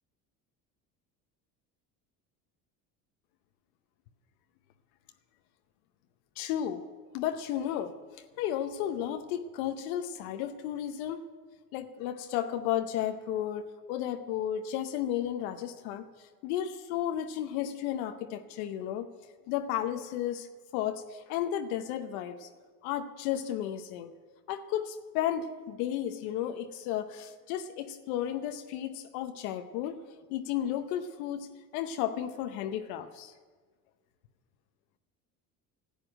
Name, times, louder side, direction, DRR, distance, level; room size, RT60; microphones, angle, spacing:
voice 1, 6.4-6.9 7.1-7.9 8.4-11.2 11.7-16.1 16.4-19.1 19.5-20.5 20.7-22.5 22.8-24.1 24.5-30.0 30.3-31.5 31.7-33.3, left 10 dB, 85° left, 7 dB, 0.9 m, -33 dB
12.0 x 8.4 x 9.9 m, 1.5 s
supercardioid pair, 85°, 41 cm